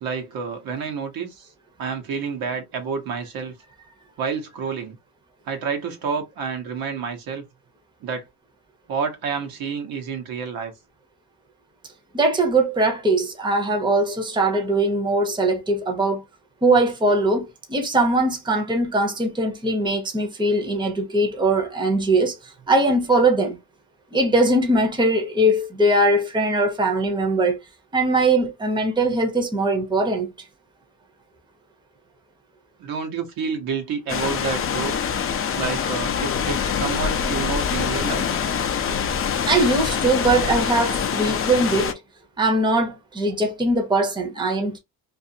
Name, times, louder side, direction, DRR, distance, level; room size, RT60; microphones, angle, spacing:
voice 1, 0.0-1.5 1.8-3.5 4.2-5.0 5.5-7.4 8.0-8.3 8.9-10.7 32.8-35.0 35.5-38.3, right 5 dB, 65° right, 1.0 m, -29 dB
voice 2, 12.1-16.2 16.6-23.6 24.1-27.6 27.9-30.3 39.5-41.9 42.4-44.8, right 2 dB, 10° right, 0.8 m, -21 dB
sound 1, 34.1-41.9, left 7 dB, 35° left, 0.5 m, -25 dB
2.5 x 2.4 x 2.7 m
cardioid pair, 105°, 39 cm